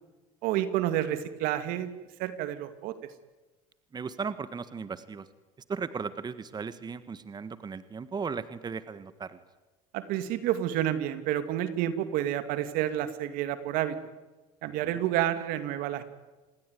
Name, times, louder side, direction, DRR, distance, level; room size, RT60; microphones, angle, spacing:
voice 1, 0.4-1.9 2.2-2.9 9.9-14.0 14.6-16.0, right 12 dB, 70° right, 11 dB, 2.4 m, -29 dB
voice 2, 3.9-5.3 5.7-9.4 14.8-15.0, right 5 dB, 25° right, 13 dB, 1.6 m, -36 dB
28.0 x 21.0 x 9.5 m, 1.2 s
supercardioid pair, 90°, 15 cm